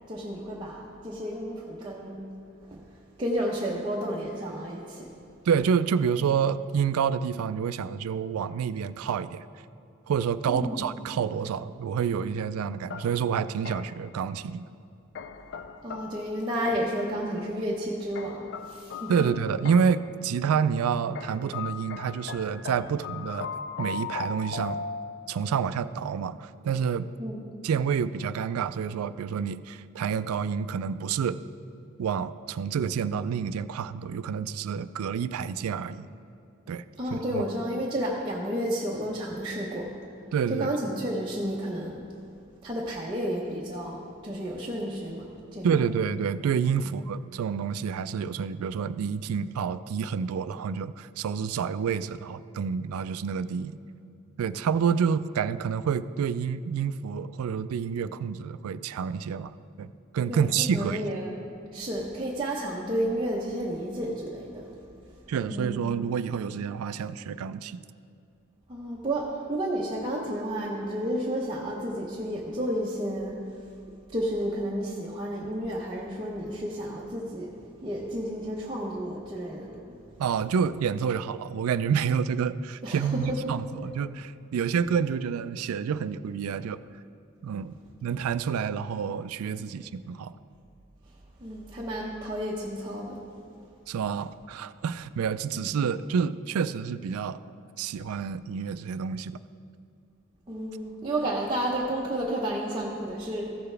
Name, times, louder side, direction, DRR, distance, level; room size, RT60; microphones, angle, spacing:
voice 1, 0.1-2.2 2.7-2.8 3.2-5.1 10.4-10.9 15.8-19.3 27.2-27.5 37.0-39.9 40.5-42.0 42.6-45.9 46.8-46.9 60.3-61.3 61.7-64.8 65.5-65.8 68.7-73.4 74.1-77.5 77.8-79.8 82.8-83.5 91.4-93.2 95.5-95.7 100.5-103.5, equal, 20° right, -6 dB, 0.8 m, -31 dB
voice 2, 5.5-9.4 10.1-14.7 19.1-23.5 23.8-24.8 25.3-27.1 27.6-31.4 32.0-36.1 36.7-36.8 37.3-37.4 40.3-40.7 45.6-53.7 54.4-61.0 65.3-67.8 80.2-86.8 87.4-90.3 93.9-97.4 97.8-99.4, right 7 dB, 90° right, 14 dB, 0.3 m, -28 dB
sound 1, 12.9-14.1 15.1-17.1 18.1-20.1 21.1-25.4, left 5 dB, 50° left, 0.4 m, -38 dB
14.5 x 6.8 x 3.3 m, 2.5 s
head